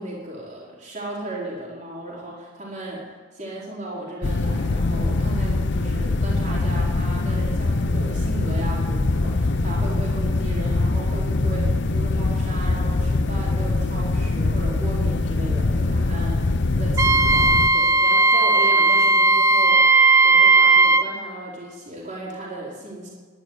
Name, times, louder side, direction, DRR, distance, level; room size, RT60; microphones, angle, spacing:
voice 1, 0.0-3.0 3.3-23.1, right 1 dB, 35° right, -5 dB, 4.3 m, -35 dB
sound 1, 4.2-17.7, left 2 dB, 55° left, 0.6 m, -23 dB
Wind instrument woodwind instrument, 17.0-21.1, right 3 dB, 15° right, 0.6 m, -16 dB
11.5 x 11.0 x 9.8 m, 1.5 s
head